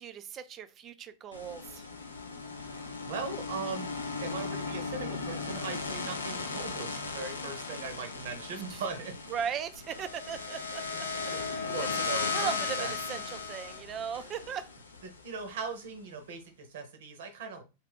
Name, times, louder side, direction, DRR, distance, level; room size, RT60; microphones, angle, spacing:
voice 1, 0.0-1.9 8.7-8.8 9.3-11.3 12.3-14.7, right 8 dB, 35° right, 12 dB, 0.3 m, -38 dB
sound 1, 1.3-15.5, left 4 dB, 85° left, 0.5 m, -36 dB
voice 2, 2.6-3.9 4.2-9.2 10.9-11.0 11.3-12.9 15.0-17.6, right 4 dB, 65° right, 6 dB, 0.7 m, -39 dB
2.4 x 2.4 x 3.4 m, 0.29 s
figure-of-eight pair, 95°, 0 cm